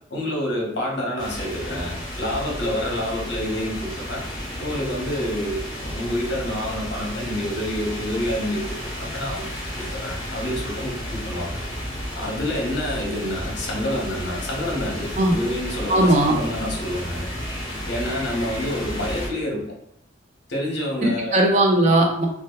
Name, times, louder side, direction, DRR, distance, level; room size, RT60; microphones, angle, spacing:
voice 1, 0.1-4.2 4.6-9.4 9.8-11.5 12.1-17.3 17.6-19.6 20.5-21.4, left 1 dB, 55° left, -2 dB, 0.8 m, -28 dB
sound 1, 1.2-19.3, equal, 20° left, 0.9 m, -32 dB
voice 2, 15.9-16.3 21.0-22.3, right 1 dB, 35° right, 0 dB, 0.4 m, -18 dB
2.8 x 2.2 x 2.2 m, 0.76 s
head